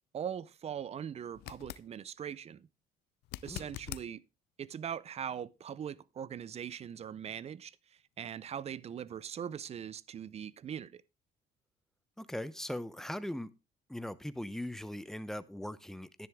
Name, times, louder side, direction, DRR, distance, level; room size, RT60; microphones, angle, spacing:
voice 1, 0.1-2.7 3.4-4.2 4.6-7.8 8.2-11.0, right 8 dB, 40° right, 0.5 m, -41 dB
sound 1, 1.3-1.9 3.2-4.1 7.1-7.2, left 15 dB, 75° left, 0.5 m, -44 dB
voice 2, 12.2-13.5 13.9-16.3, left 1 dB, ahead, 0.7 m, -40 dB
10.5 x 10.5 x 3.5 m
cardioid pair, 110°, 17 cm